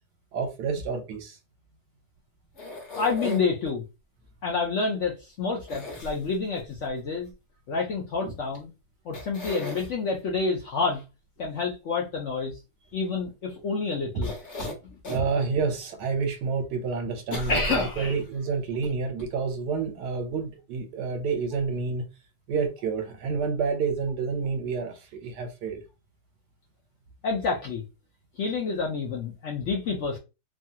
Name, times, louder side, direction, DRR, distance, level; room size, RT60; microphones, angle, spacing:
voice 1, 0.3-1.4 8.2-8.3 14.1-14.2 15.1-22.0 22.5-25.8, right 5 dB, 80° right, 1.3 m, -29 dB
sound 1, 2.6-3.7 5.7-6.6 8.5-8.6 9.1-9.9 14.2-15.3 15.8-15.9 17.3-18.3 18.8-18.9 19.2-19.3, left 1 dB, 50° left, 1.2 m, -36 dB
voice 2, 2.9-3.8 4.4-7.3 7.7-8.7 9.0-11.0 11.4-12.6 12.9-14.3 17.5-18.2 27.2-27.8 28.4-30.2, left 4 dB, 65° left, 0.7 m, -28 dB
3.1 x 2.3 x 2.7 m
omnidirectional pair, 1.8 m